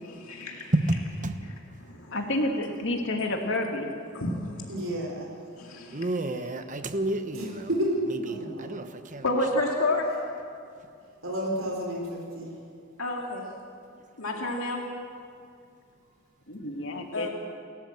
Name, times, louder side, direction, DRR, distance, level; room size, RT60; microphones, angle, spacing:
voice 1, 0.0-0.7 1.4-2.2 4.1-4.8 5.6-6.1 9.2-10.1 13.0-13.4 14.2-14.8 17.1-17.3, left 2 dB, 80° left, 0 dB, 2.2 m, -30 dB
voice 2, 0.7-1.4 5.9-7.7 8.6-9.2, right 1 dB, 35° right, 8 dB, 1.1 m, -29 dB
voice 3, 2.1-3.9 16.6-17.3, left 1 dB, 60° left, 3 dB, 2.4 m, -29 dB
voice 4, 4.7-5.4 7.3-8.7 11.2-12.6, right 1 dB, 65° right, -1 dB, 4.1 m, -31 dB
29.5 x 13.5 x 7.6 m, 2.4 s
head